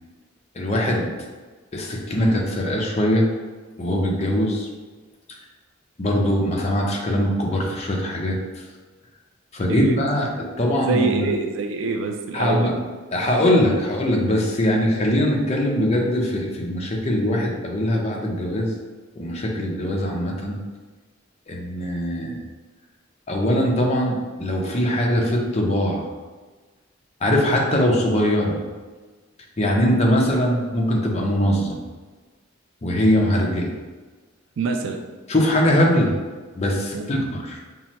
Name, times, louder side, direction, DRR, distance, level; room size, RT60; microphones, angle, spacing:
voice 1, 0.5-1.1 1.7-3.3 3.8-4.7 6.0-8.6 9.5-11.3 12.3-12.7 13.1-18.7 19.2-20.6 21.5-22.4 23.3-26.1 27.2-28.6 29.6-31.8 32.8-33.7 35.3-36.2 36.5-37.6, equal, 35° left, -1 dB, 0.6 m, -21 dB
voice 2, 10.8-12.7 34.6-35.0 36.9-37.1, right 4 dB, 80° right, 4 dB, 0.4 m, -25 dB
5.5 x 2.1 x 3.0 m, 1.3 s
head